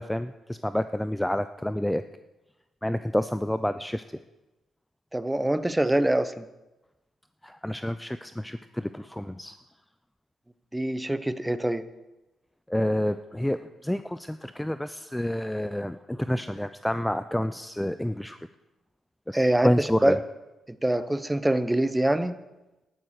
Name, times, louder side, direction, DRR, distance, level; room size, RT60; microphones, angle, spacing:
voice 1, 0.0-2.0 2.8-4.0 7.4-9.5 12.7-18.4 19.3-20.2, left 1 dB, 5° left, 12 dB, 0.5 m, -28 dB
voice 2, 5.1-6.5 10.7-11.8 19.3-20.2 20.8-22.3, right 1 dB, 10° right, 13 dB, 0.9 m, -24 dB
12.0 x 11.0 x 6.6 m, 1.0 s
cardioid pair, 70°, 0 cm